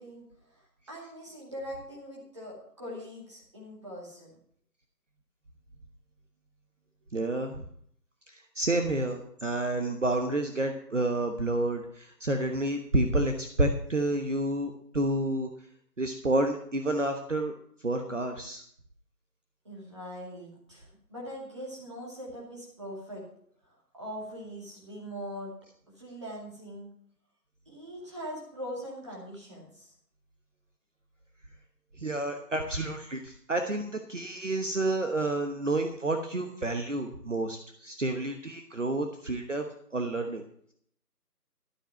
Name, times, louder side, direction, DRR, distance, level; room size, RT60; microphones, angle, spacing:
voice 1, 0.0-4.3 19.6-23.2 23.6-25.5 25.9-26.9 27.7-29.9, equal, 20° right, -4 dB, 2.3 m, -42 dB
voice 2, 7.1-7.6 8.3-15.5 16.0-17.5 17.8-18.6 32.0-40.4, right 2 dB, 50° right, 5 dB, 1.2 m, -29 dB
12.5 x 7.4 x 5.9 m, 0.63 s
figure-of-eight pair, 175°, 48 cm